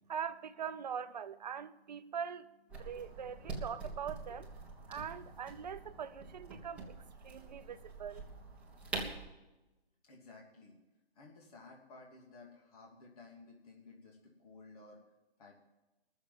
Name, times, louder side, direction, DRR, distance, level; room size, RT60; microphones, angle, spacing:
voice 1, 0.1-2.5 2.8-4.5 4.9-8.2, right 7 dB, 45° right, 0.7 m, -42 dB
sound 1, 2.7-9.2, right 3 dB, 5° right, 1.7 m, -45 dB
voice 2, 10.0-10.8 11.1-15.0 15.4-15.5, left 3 dB, 35° left, 3.0 m, -56 dB
20.5 x 7.2 x 7.6 m
hypercardioid pair, 165°, 31 cm